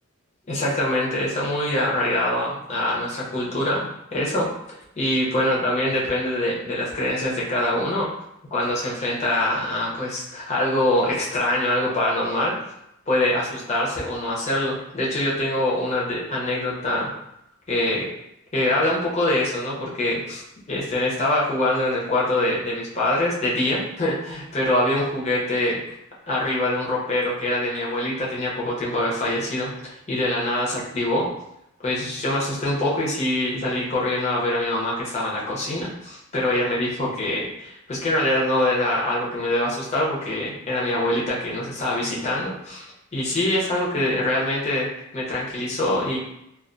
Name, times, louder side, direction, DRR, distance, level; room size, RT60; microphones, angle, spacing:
voice 1, 0.5-4.5 5.0-8.1 8.5-12.5 13.1-17.1 17.7-18.1 18.5-25.8 26.3-31.3 31.8-44.9 45.1-46.2, left 1 dB, 35° left, -5 dB, 0.6 m, -24 dB
2.3 x 2.2 x 2.5 m, 0.82 s
head